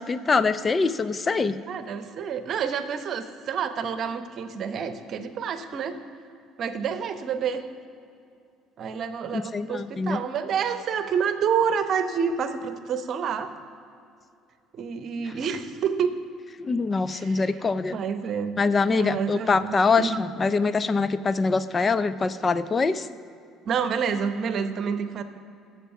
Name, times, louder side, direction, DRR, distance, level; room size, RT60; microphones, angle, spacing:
voice 1, 0.0-1.6 9.3-10.2 15.2-15.3 16.6-18.0 18.6-23.1, left 4 dB, 30° left, 13 dB, 0.5 m, -24 dB
voice 2, 1.7-6.0 6.6-7.6 8.8-13.5 14.7-16.2 17.1-17.4 17.9-18.6 18.9-20.2 23.7-25.2, right 7 dB, 50° right, 10 dB, 0.9 m, -28 dB
12.5 x 7.3 x 5.8 m, 2.5 s
hypercardioid pair, 60°, 0 cm